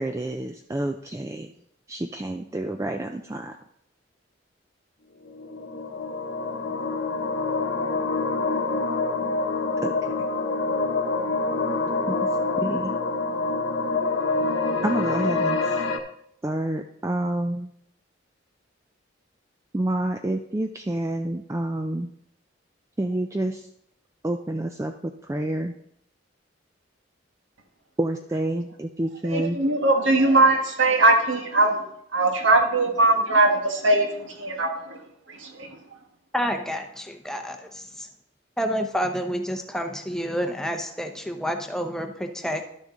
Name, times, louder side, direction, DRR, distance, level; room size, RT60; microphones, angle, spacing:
voice 1, 0.0-1.5 1.9-3.6 9.8-10.1 12.1-12.2 12.6-12.9 14.8-15.8 16.4-17.7 19.7-22.1 23.0-23.7 24.2-25.7 28.0-29.6, right 1 dB, 15° right, 5 dB, 0.3 m, -28 dB
sound 1, 5.2-16.0, left 3 dB, 80° left, 1.0 m, -26 dB
voice 2, 29.3-31.8 32.1-35.8, right 2 dB, 70° right, 3 dB, 1.5 m, -21 dB
voice 3, 36.3-38.1 38.6-42.6, equal, 5° left, 5 dB, 0.7 m, -29 dB
12.0 x 6.4 x 3.8 m, 0.73 s
head